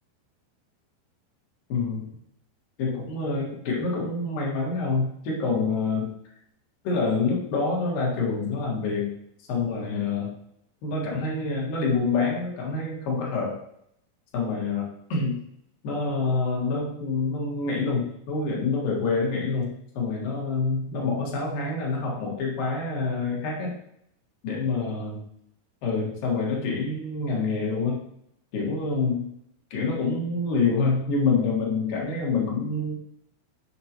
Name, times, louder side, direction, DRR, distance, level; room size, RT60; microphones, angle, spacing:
voice 1, 1.7-2.1 2.8-6.1 6.8-9.1 9.5-10.3 10.8-13.6 14.3-15.4 15.8-23.8 24.4-25.2 25.8-28.0 28.5-29.3 29.7-33.0, left 4 dB, 60° left, -3 dB, 2.7 m, -27 dB
8.0 x 5.8 x 2.9 m, 0.74 s
omnidirectional pair, 5.6 m